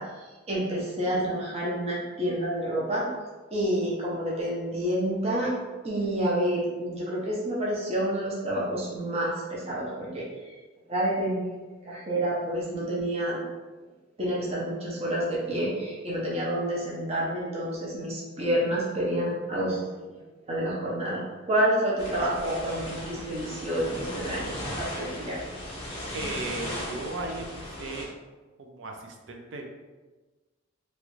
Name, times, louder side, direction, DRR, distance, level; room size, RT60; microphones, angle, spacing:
voice 1, 0.0-3.1 3.5-5.5 5.8-10.3 10.9-13.4 14.2-25.4, right 1 dB, 35° right, -5 dB, 0.7 m, -29 dB
sound 1, 22.0-28.1, left 1 dB, 30° left, 0.9 m, -37 dB
voice 2, 26.1-28.1 28.6-29.6, right 2 dB, 70° right, 2 dB, 0.5 m, -36 dB
3.1 x 2.4 x 3.1 m, 1.2 s
head